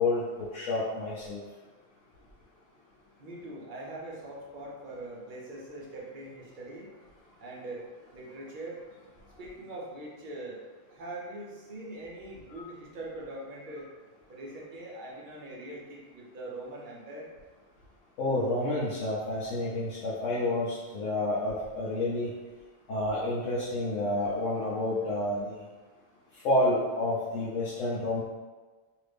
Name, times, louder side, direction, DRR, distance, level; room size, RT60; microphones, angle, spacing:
voice 1, 0.0-1.4 18.2-22.3 22.9-25.6 26.3-28.2, left 2 dB, 85° left, -6 dB, 1.0 m, -29 dB
voice 2, 3.2-6.9 7.4-7.8 8.1-8.8 9.4-13.9 14.3-17.3, right 1 dB, 50° right, -3 dB, 0.7 m, -42 dB
2.8 x 2.5 x 3.3 m, 1.3 s
omnidirectional pair, 1.2 m